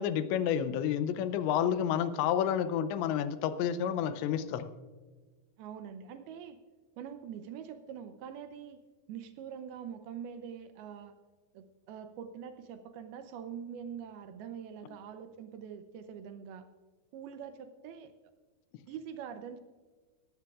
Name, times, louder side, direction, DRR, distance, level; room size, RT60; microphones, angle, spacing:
voice 1, 0.0-4.7, left 9 dB, 90° left, 11 dB, 3.0 m, -30 dB
voice 2, 5.6-6.6 7.0-8.8 9.1-11.1 11.5-16.7 17.1-18.1 18.9-19.6, right 8 dB, 80° right, 9 dB, 2.3 m, -44 dB
18.5 x 14.5 x 2.4 m, 1.4 s
omnidirectional pair, 5.1 m